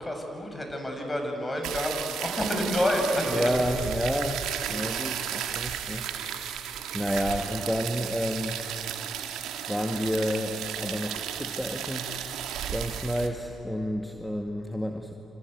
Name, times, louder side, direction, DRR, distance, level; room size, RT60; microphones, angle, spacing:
voice 1, 0.0-3.5, equal, 25° left, 3 dB, 7.2 m, -29 dB
sound 1, 1.6-13.3, right 9 dB, 75° right, 1.7 m, -34 dB
voice 2, 3.3-6.0 6.9-8.6 9.7-12.1 12.7-15.1, equal, 5° left, 4 dB, 2.0 m, -30 dB
27.0 x 27.0 x 8.1 m, 3.0 s
hypercardioid pair, 45°, 0 cm